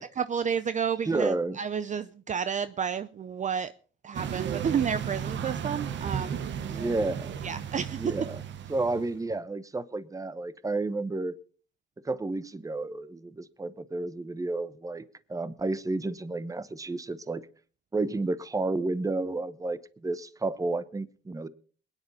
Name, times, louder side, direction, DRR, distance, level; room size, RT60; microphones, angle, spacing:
voice 1, 0.2-3.7 4.0-6.4 6.7-6.9 7.4-8.2, right 7 dB, 40° right, 0.5 m, -31 dB
voice 2, 1.1-1.6 6.7-7.4 8.0-8.3 8.7-11.3 12.0-15.0 15.3-17.4 17.9-21.5, right 2 dB, 15° right, 0.9 m, -31 dB
sound 1, 4.1-9.2, right 8 dB, 65° right, 1.1 m, -34 dB
21.5 x 9.8 x 4.1 m
cardioid pair, 90°, 20 cm